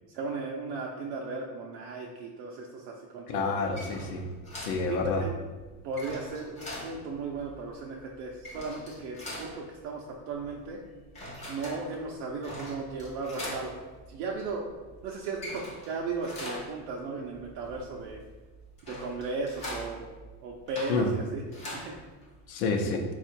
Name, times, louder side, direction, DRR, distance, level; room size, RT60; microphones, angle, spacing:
voice 1, 0.1-3.7 4.9-5.4 5.8-10.8 11.5-13.8 14.1-14.7 15.0-18.2 18.9-20.1 20.4-21.9, right 3 dB, 65° right, -1 dB, 0.6 m, -36 dB
voice 2, 3.3-4.3 4.6-5.2 20.9-21.1 22.5-23.0, left 4 dB, 80° left, 3 dB, 0.7 m, -28 dB
sound 1, 3.6-22.5, left 1 dB, 15° left, 0.4 m, -43 dB
3.6 x 2.4 x 4.3 m, 1.3 s
supercardioid pair, 150°, 50 cm